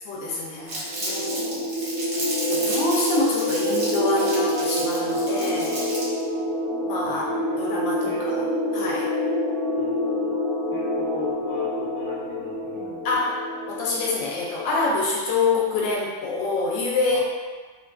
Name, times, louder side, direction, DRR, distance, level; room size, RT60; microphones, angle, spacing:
voice 1, 0.1-1.8 2.5-5.9 6.8-7.2 7.6-8.3 8.7-9.1 13.0-13.4 13.7-17.2, left 3 dB, 80° left, -3 dB, 1.3 m, -26 dB
Crumpling crinkling, 0.7-6.2, right 1 dB, 85° right, 0.4 m, -32 dB
sound 1, 0.8-15.2, left 1 dB, 55° left, 1.0 m, -27 dB
voice 2, 7.0-7.6 8.0-8.2 9.7-10.3 10.7-13.1 17.1-17.2, left 1 dB, 25° left, -11 dB, 0.5 m, -39 dB
3.0 x 2.5 x 2.2 m, 1.4 s
omnidirectional pair, 2.1 m